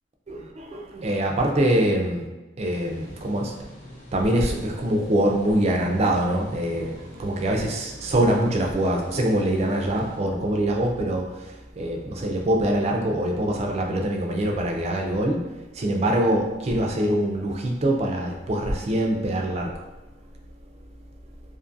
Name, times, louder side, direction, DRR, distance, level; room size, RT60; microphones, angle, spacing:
voice 1, 0.3-2.3 2.6-3.5 4.1-19.9, right 1 dB, 35° right, 1 dB, 0.4 m, -24 dB
sound 1, 2.6-10.2, equal, 45° left, 0.7 m, -46 dB
2.5 x 2.5 x 2.5 m, 1.1 s
head